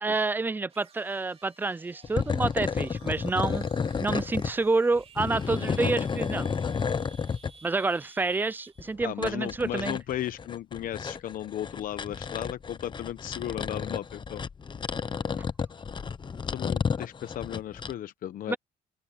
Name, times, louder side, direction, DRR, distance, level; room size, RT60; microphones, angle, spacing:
voice 1, 0.0-3.6 4.0-6.5 7.6-10.0 18.5-18.6, right 3 dB, 10° right, 0.3 m, -28 dB
sound 1, 0.7-9.0, right 5 dB, 35° right, 3.9 m, -54 dB
sound 2, 2.0-4.5 5.0-7.5 8.8-17.9, left 6 dB, 30° left, 0.9 m, -31 dB
voice 2, 9.0-14.4 16.5-18.6, left 12 dB, 55° left, 0.9 m, -35 dB
open air
cardioid pair, 110°, 17 cm